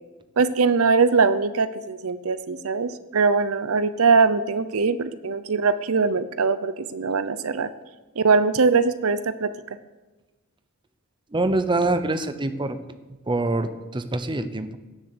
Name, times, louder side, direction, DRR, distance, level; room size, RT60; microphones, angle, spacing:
voice 1, 0.4-7.7 8.2-9.5, right 4 dB, 70° right, 13 dB, 0.6 m, -21 dB
voice 2, 11.3-12.8 13.3-14.7, right 2 dB, 20° right, 10 dB, 0.7 m, -25 dB
16.5 x 7.0 x 6.7 m, 1.2 s
head